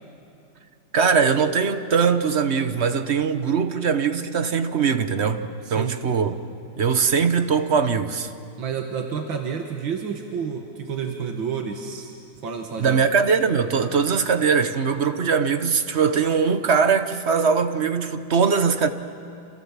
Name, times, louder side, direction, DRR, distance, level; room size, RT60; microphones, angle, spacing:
voice 1, 0.9-6.3 6.8-8.3 12.8-18.9, right 6 dB, 45° right, 1.1 m, -21 dB
voice 2, 5.7-6.0 8.6-12.1 12.4-13.0, right 6 dB, 90° right, 2.4 m, -30 dB
29.0 x 28.0 x 7.4 m
omnidirectional pair, 2.0 m